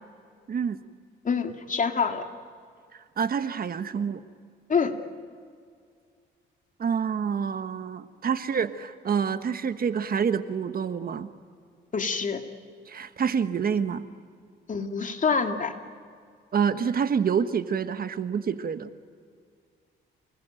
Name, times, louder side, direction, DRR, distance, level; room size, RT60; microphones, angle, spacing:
voice 1, 0.5-0.8 3.2-4.2 6.8-11.3 12.9-14.1 16.5-18.9, right 7 dB, 50° right, 11 dB, 1.3 m, -27 dB
voice 2, 1.2-2.3 4.7-4.9 11.9-12.4 14.7-15.7, left 5 dB, 40° left, 5 dB, 2.5 m, -26 dB
28.5 x 20.5 x 9.1 m, 2.2 s
cardioid pair, 90°, 20 cm